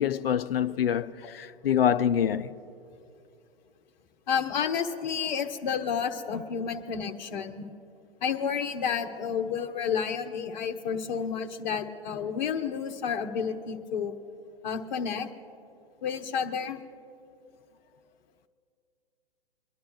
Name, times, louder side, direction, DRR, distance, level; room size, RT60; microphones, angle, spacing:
voice 1, 0.0-2.5 6.3-6.4, left 9 dB, 65° left, 0.6 m, -26 dB
voice 2, 4.3-7.7 8.2-14.2 14.6-15.3 16.0-16.8, left 7 dB, 45° left, 1.1 m, -30 dB
23.5 x 11.0 x 3.1 m
figure-of-eight pair, 120°, 31 cm